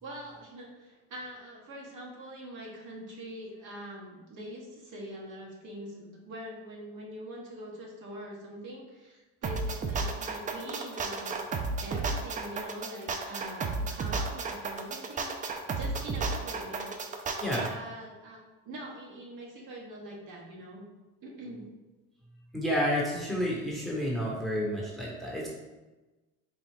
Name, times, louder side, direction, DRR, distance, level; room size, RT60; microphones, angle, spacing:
voice 1, 0.0-16.9 17.5-18.4 18.6-20.8 21.2-21.6, right 1 dB, 60° right, -3 dB, 1.2 m, -43 dB
sound 1, 9.4-17.7, right 4 dB, 25° right, 0.4 m, -33 dB
voice 2, 22.5-25.5, equal, ahead, -4 dB, 1.0 m, -30 dB
4.1 x 2.3 x 3.3 m, 1.1 s
supercardioid pair, 85°, 35 cm